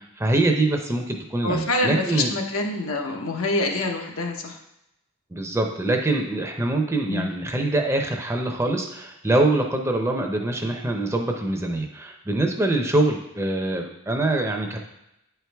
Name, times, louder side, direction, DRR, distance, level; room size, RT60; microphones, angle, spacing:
voice 1, 0.0-2.3 5.3-14.8, right 2 dB, 15° right, 3 dB, 0.6 m, -24 dB
voice 2, 1.4-4.6 7.1-7.3, left 2 dB, 85° left, 2 dB, 1.0 m, -26 dB
8.7 x 4.6 x 3.4 m, 0.85 s
head